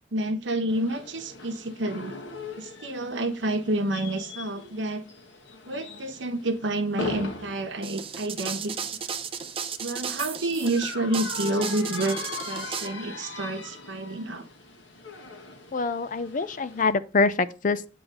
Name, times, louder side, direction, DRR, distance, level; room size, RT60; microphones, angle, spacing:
voice 1, 0.1-2.1 2.6-5.0 5.7-8.7 9.8-14.5, right 1 dB, 85° right, 1.1 m, -29 dB
sound 1, 0.7-16.9, left 3 dB, 85° left, 1.5 m, -40 dB
sound 2, 7.8-12.9, right 7 dB, 30° right, 0.7 m, -34 dB
voice 2, 15.7-17.9, left 4 dB, 45° left, 0.5 m, -25 dB
8.8 x 3.2 x 6.4 m
head